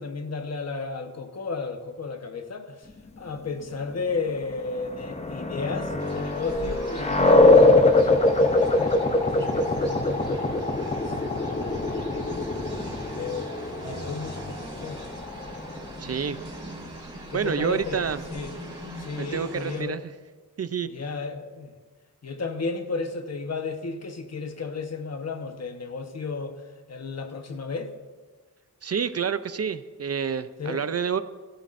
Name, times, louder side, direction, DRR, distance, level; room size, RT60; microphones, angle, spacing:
voice 1, 0.0-2.9 3.2-9.0 9.3-13.5 13.8-15.0 17.3-18.0 18.3-18.5 19.0-20.0 20.8-21.7 22.2-26.6 26.9-27.9 30.6-30.9, left 4 dB, 45° left, 1.2 m, -34 dB
sound 1, 4.6-16.0, left 2 dB, 20° left, 0.7 m, -23 dB
sound 2, 6.0-19.8, right 1 dB, 15° right, 3.7 m, -40 dB
voice 2, 16.0-16.4 17.3-18.2 19.2-20.0 20.6-20.9 28.8-31.2, right 7 dB, 45° right, 0.5 m, -28 dB
21.5 x 13.5 x 2.6 m
wide cardioid pair, 150°, 35 cm